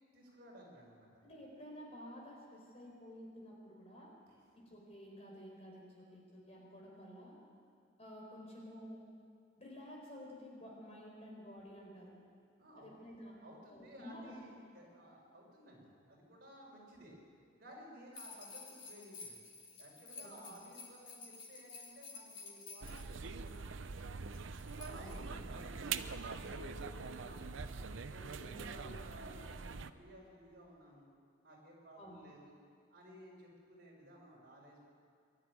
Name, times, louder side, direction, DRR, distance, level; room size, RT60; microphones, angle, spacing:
voice 1, 0.1-1.2 4.3-4.4 12.6-12.9 13.4-17.2 17.6-19.4 19.8-24.0 24.7-27.6 28.1-31.1 31.4-32.6 32.9-34.8, equal, 50° right, -2 dB, 5.8 m, -56 dB
voice 2, 1.2-4.1 4.5-7.4 8.0-9.1 9.6-12.1 12.8-13.4 13.7-14.5 20.2-20.6 24.8-25.8 28.4-29.7 32.0-32.2, equal, 30° left, -2 dB, 4.8 m, -52 dB
sound 1, 18.1-23.6 24.3-25.5, left 4 dB, 75° left, 3.9 m, -52 dB
sound 2, 22.8-29.9, right 5 dB, 75° right, 0.7 m, -44 dB
23.5 x 12.5 x 9.8 m, 2.2 s
head